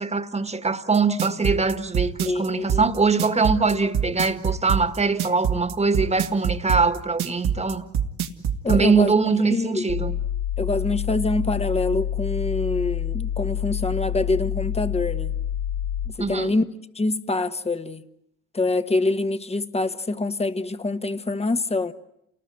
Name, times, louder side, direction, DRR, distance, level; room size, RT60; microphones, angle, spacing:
voice 1, 0.0-7.8 8.7-10.1 16.2-16.5, right 4 dB, 20° right, 1.8 m, -22 dB
sound 1, 0.9-8.8, right 8 dB, 75° right, 2.0 m, -24 dB
voice 2, 2.2-2.8 8.6-9.1 9.5-9.9 10.6-15.3 16.2-16.6 16.9-18.0 18.5-21.9, left 2 dB, 20° left, 1.4 m, -25 dB
sound 2, 9.9-16.1, left 10 dB, 75° left, 6.0 m, -27 dB
29.0 x 19.5 x 10.0 m
cardioid pair, 90°, 30 cm